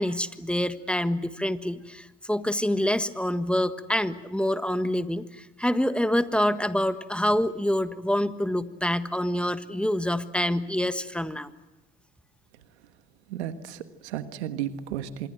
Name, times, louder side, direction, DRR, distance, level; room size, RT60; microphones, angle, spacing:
voice 1, 0.0-11.5, left 1 dB, 5° left, 11 dB, 1.4 m, -26 dB
voice 2, 13.3-15.3, right 10 dB, 85° right, 10 dB, 1.5 m, -33 dB
26.0 x 22.0 x 7.9 m, 1.0 s
hypercardioid pair, 70°, 32 cm